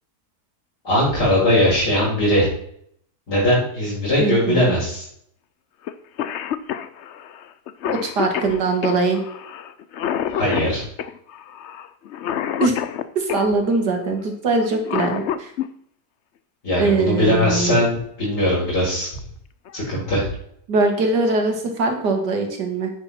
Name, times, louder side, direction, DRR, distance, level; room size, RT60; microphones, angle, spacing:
voice 1, 0.8-2.5 3.3-5.0 10.3-10.8 16.6-19.1 19.7-20.3, left 1 dB, 80° left, -11 dB, 5.2 m, -20 dB
voice 2, 4.2-4.8 7.9-9.2 12.6-12.8 13.2-15.5 16.8-17.8 20.7-22.9, right 3 dB, 80° right, 4 dB, 2.5 m, -21 dB
Cough, 5.9-6.0 6.2-13.5 14.6-15.7 17.3-17.4 18.4-18.7 19.2-19.3 19.7-20.1, left 9 dB, 65° left, 0.7 m, -28 dB
10.5 x 8.8 x 4.3 m, 0.69 s
omnidirectional pair, 1.8 m